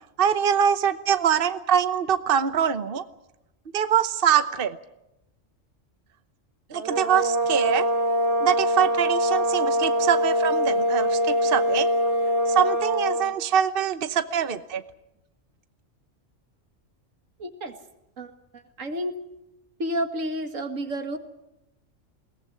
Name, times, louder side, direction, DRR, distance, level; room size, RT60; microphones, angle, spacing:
voice 1, 0.2-3.0 3.7-4.8 6.7-7.8 8.4-11.9 12.5-14.8, right 8 dB, 50° right, 11 dB, 1.1 m, -24 dB
sound 1, 6.7-13.3, equal, 65° right, 3.5 m, -23 dB
voice 2, 17.4-17.7 18.2-19.2 19.8-21.2, equal, 85° right, 7 dB, 2.3 m, -31 dB
22.0 x 18.5 x 9.7 m, 0.90 s
omnidirectional pair, 1.3 m